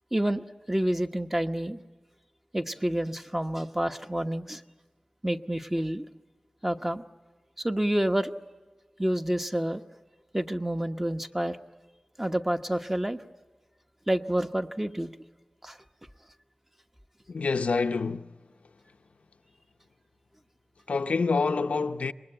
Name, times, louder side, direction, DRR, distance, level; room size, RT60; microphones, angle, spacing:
voice 1, 0.1-1.8 2.5-4.6 5.2-6.0 6.6-7.0 7.6-8.4 9.0-9.8 10.3-11.6 12.2-13.2 14.1-15.1 15.6-15.8, right 1 dB, 15° right, 1.1 m, -28 dB
voice 2, 17.3-18.3 20.9-22.1, left 4 dB, 90° left, 0.7 m, -27 dB
26.5 x 21.5 x 9.0 m
wide cardioid pair, 70°, 2 cm